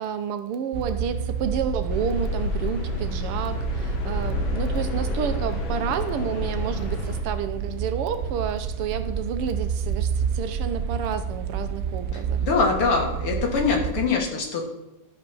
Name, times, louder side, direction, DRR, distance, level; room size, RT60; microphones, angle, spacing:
voice 1, 0.0-12.4, right 7 dB, 90° right, 9 dB, 1.8 m, -30 dB
sound 1, 0.7-14.1, right 6 dB, 70° right, 0.8 m, -30 dB
sound 2, 1.9-7.2, left 2 dB, 65° left, 2.2 m, -30 dB
voice 2, 12.4-14.7, left 4 dB, 85° left, 1 dB, 2.8 m, -23 dB
12.5 x 5.3 x 6.2 m, 0.92 s
omnidirectional pair, 2.4 m